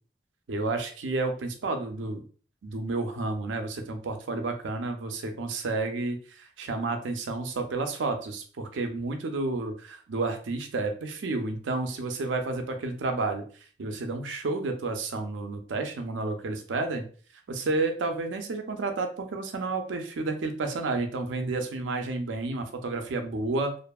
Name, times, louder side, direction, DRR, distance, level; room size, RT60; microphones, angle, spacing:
voice 1, 0.5-2.2 2.6-13.4 13.8-17.1 17.5-23.8, right 3 dB, 90° right, 5 dB, 0.5 m, -31 dB
2.6 x 2.4 x 2.2 m, 0.41 s
head